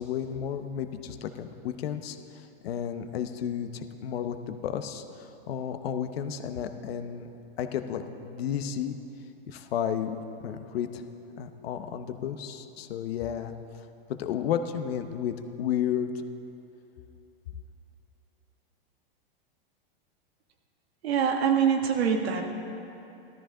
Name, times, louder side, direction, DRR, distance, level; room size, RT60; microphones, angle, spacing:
voice 1, 0.0-7.3 7.6-8.9 9.5-11.0 11.4-13.5 14.1-16.1, left 9 dB, 75° left, 8 dB, 0.9 m, -32 dB
voice 2, 21.0-22.4, right 7 dB, 85° right, 3 dB, 1.6 m, -24 dB
15.0 x 13.5 x 3.8 m, 2.9 s
supercardioid pair, 155°, 31 cm